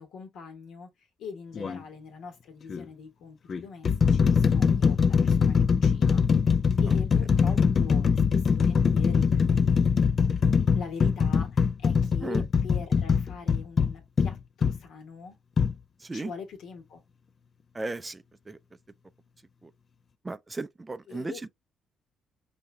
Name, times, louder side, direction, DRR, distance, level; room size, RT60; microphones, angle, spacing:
voice 1, 0.0-6.2 6.8-9.3 10.7-15.4 16.1-17.0 21.1-21.6, left 5 dB, 80° left, 1.6 m, -43 dB
sound 1, 1.6-1.8 2.7-2.8 3.5-14.8 15.6-15.7, left 6 dB, 45° left, 0.4 m, -22 dB
voice 2, 16.0-16.3 17.7-18.6 19.6-19.7 20.2-21.4, right 3 dB, 20° right, 0.4 m, -36 dB
5.4 x 2.7 x 2.2 m
cardioid pair, 90°, 0 cm